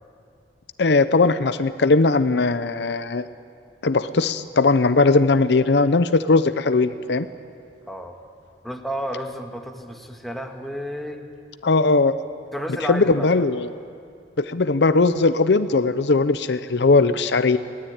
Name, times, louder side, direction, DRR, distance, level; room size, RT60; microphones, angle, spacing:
voice 1, 0.8-3.2 3.8-7.3 11.6-12.1 12.9-13.7 14.4-17.6, left 3 dB, 70° left, 12 dB, 0.7 m, -19 dB
voice 2, 7.9-8.2 8.6-11.3 12.5-13.4, equal, ahead, 3 dB, 1.6 m, -32 dB
23.0 x 18.5 x 8.8 m, 2.4 s
head